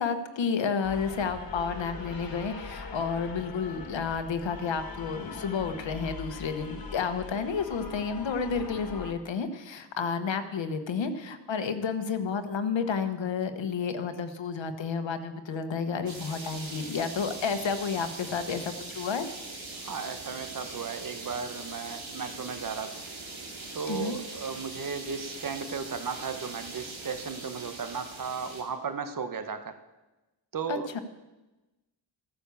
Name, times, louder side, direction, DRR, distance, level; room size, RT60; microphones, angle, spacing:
voice 1, 0.0-19.3 23.9-24.2 30.7-31.0, left 5 dB, 75° left, 9 dB, 1.2 m, -31 dB
sound 1, 0.8-9.1, left 4 dB, 50° left, 1.8 m, -42 dB
sound 2, 16.1-28.6, right 3 dB, 85° right, 2.9 m, -41 dB
voice 2, 19.7-23.1 23.7-29.8 30.5-30.9, right 6 dB, 45° right, 9 dB, 1.2 m, -35 dB
14.5 x 9.6 x 7.0 m, 1.1 s
wide cardioid pair, 105°, 45 cm